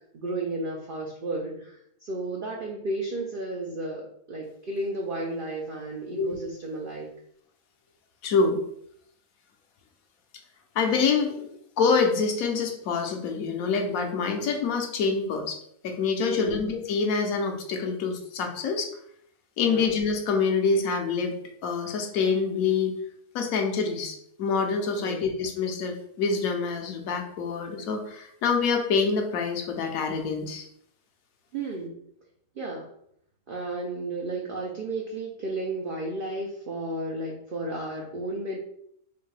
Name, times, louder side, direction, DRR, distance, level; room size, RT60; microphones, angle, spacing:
voice 1, 0.1-7.1 16.3-16.6 19.6-19.9 25.0-25.3 31.5-32.0 32.6-32.9 33.5-38.6, right 2 dB, 60° right, -1 dB, 0.5 m, -33 dB
voice 2, 8.2-8.6 10.7-11.5 11.8-15.6 15.8-18.9 19.6-21.4 21.6-22.9 23.3-30.7, left 5 dB, 70° left, 4 dB, 1.1 m, -26 dB
4.3 x 2.7 x 3.2 m, 0.70 s
omnidirectional pair, 1.6 m